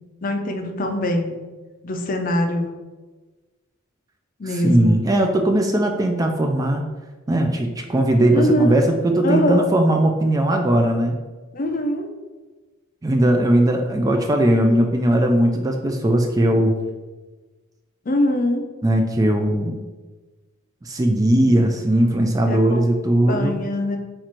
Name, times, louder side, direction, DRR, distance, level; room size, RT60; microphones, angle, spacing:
voice 1, 0.2-1.4 1.8-2.7 4.4-5.0 8.3-8.8 9.2-9.7 11.5-12.1 18.1-18.7 22.5-22.9 23.3-24.0, left 1 dB, 45° left, 4 dB, 0.5 m, -22 dB
voice 2, 4.5-6.8 7.3-11.2 13.0-16.7 18.8-19.8 20.8-23.6, right 1 dB, 15° right, 3 dB, 0.3 m, -19 dB
4.4 x 2.5 x 4.3 m, 1.3 s
head